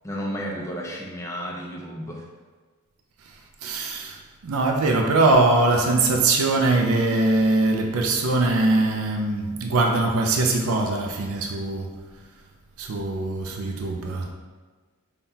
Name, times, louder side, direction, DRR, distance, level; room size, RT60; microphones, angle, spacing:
voice 1, 0.0-2.3, equal, 15° left, -2 dB, 0.4 m, -32 dB
voice 2, 3.6-4.1 4.4-11.9 12.8-14.3, right 2 dB, 70° right, 2 dB, 0.4 m, -22 dB
5.5 x 2.2 x 2.7 m, 1.4 s
head